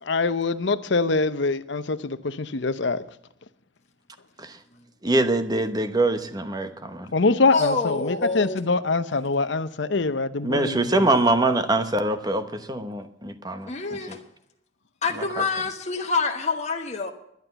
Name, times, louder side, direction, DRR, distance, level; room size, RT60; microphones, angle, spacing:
voice 1, 0.0-3.0 7.1-11.1, left 3 dB, 65° left, 0.8 m, -24 dB
voice 2, 5.0-7.1 10.4-13.7 14.1-14.2, right 2 dB, 20° right, 1.0 m, -23 dB
voice 3, 7.5-8.7 13.7-14.2 15.0-17.1, left 4 dB, 35° left, 1.2 m, -26 dB
11.5 x 10.5 x 6.9 m
head